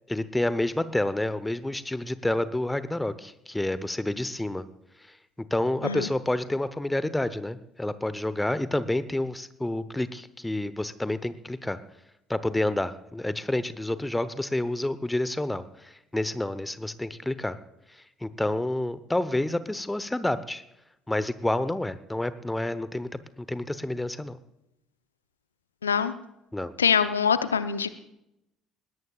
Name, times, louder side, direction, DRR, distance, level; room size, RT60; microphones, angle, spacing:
voice 1, 0.1-4.6 5.4-11.8 12.3-17.6 18.2-20.6 21.1-23.2 23.5-24.4 26.5-26.7, left 1 dB, 10° left, 14 dB, 0.9 m, -29 dB
voice 2, 25.8-26.1 26.8-27.9, left 7 dB, 85° left, 13 dB, 0.6 m, -24 dB
20.5 x 17.0 x 2.4 m, 0.85 s
figure-of-eight pair, 55°, 0 cm